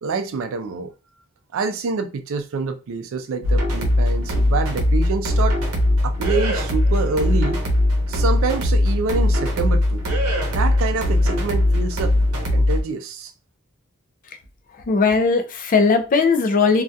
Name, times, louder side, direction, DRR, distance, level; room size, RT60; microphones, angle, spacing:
voice 1, 0.0-0.9 1.5-5.6 6.0-7.6 8.1-10.0 10.5-12.1 12.5-13.3, right 4 dB, 65° right, 0.4 m, -26 dB
sound 1, 3.4-12.8, left 1 dB, 85° right, 0.7 m, -20 dB
voice 2, 14.9-16.8, left 4 dB, 40° left, 0.4 m, -18 dB
2.3 x 2.2 x 2.6 m
head